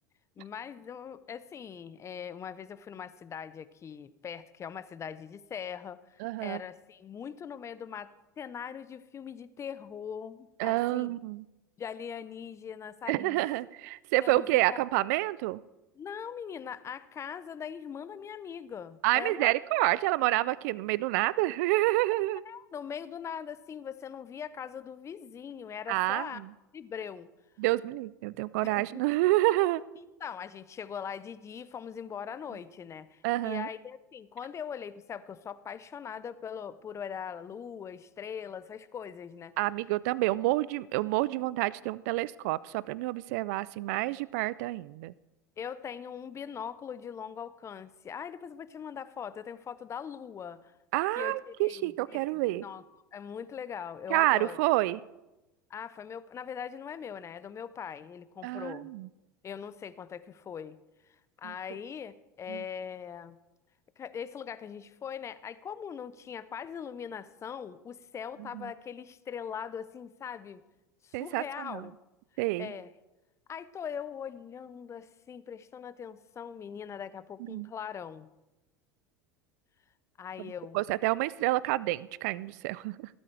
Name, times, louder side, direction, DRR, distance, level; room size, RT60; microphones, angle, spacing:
voice 1, 0.4-8.1 8.4-11.2 11.8-13.4 14.2-14.8 16.0-19.5 22.4-26.4 26.7-27.3 28.6-29.0 30.0-39.5 45.6-50.7 51.2-52.8 53.1-54.6 55.7-58.9 59.4-60.8 61.4-63.4 64.0-70.6 71.0-71.9 72.6-72.9 73.5-78.3 80.2-80.8, left 7 dB, 30° left, 15 dB, 0.8 m, -41 dB
voice 2, 6.2-6.6 10.6-11.4 13.1-15.6 19.0-22.4 25.9-26.2 27.6-29.8 33.2-33.7 39.6-45.1 50.9-52.6 54.1-55.0 58.4-59.1 62.5-62.6 68.5-68.6 71.1-71.8 72.4-72.7 77.5-77.7 80.7-83.1, right 18 dB, 65° right, 20 dB, 0.4 m, -28 dB
16.0 x 13.0 x 3.4 m, 0.99 s
hypercardioid pair, 85°, 10 cm